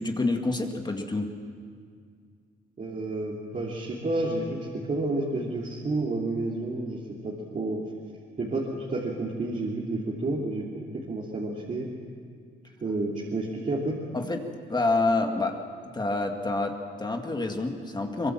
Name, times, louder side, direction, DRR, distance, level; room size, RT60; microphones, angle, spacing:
voice 1, 0.0-1.3 14.1-15.6 15.9-18.3, left 2 dB, 20° left, 3 dB, 2.1 m, -28 dB
voice 2, 2.8-7.8 8.4-11.9 12.8-14.0, right 2 dB, 40° right, -4 dB, 3.4 m, -30 dB
23.5 x 22.0 x 7.5 m, 2.1 s
cardioid pair, 90°, 20 cm